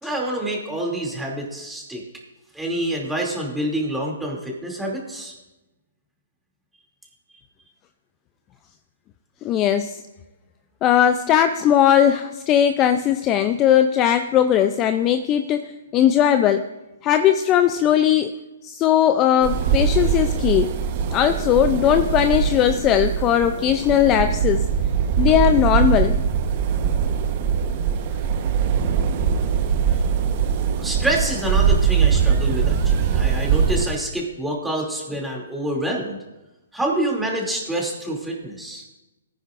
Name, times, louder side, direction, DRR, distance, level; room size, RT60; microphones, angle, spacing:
voice 1, 0.0-2.0 2.5-5.3 30.8-36.2 36.7-38.8, right 1 dB, 5° right, -2 dB, 2.8 m, -27 dB
voice 2, 9.4-10.0 10.8-16.6 17.0-18.3 18.6-20.7 21.1-24.7 25.2-26.2, left 10 dB, 25° left, 9 dB, 0.5 m, -18 dB
sound 1, 19.4-33.8, right 7 dB, 40° right, 1.1 m, -21 dB
19.0 x 10.0 x 2.6 m, 1.0 s
hypercardioid pair, 145°, 0 cm